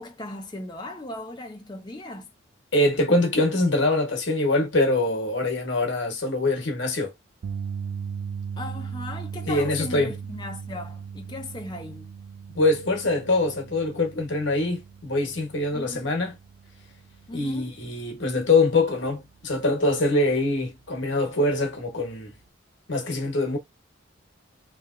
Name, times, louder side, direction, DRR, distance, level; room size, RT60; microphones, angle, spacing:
voice 1, 0.0-2.3 8.6-12.1 15.7-16.1 17.3-17.8, left 2 dB, 20° left, 0.6 m, -37 dB
voice 2, 2.7-7.1 9.5-10.1 12.5-16.4 17.3-22.3 22.9-23.6, left 2 dB, 65° left, 1.1 m, -24 dB
sound 1, 7.4-19.7 20.0-20.3 22.5-22.6, right 6 dB, 85° right, 0.4 m, -38 dB
3.1 x 2.8 x 2.5 m
head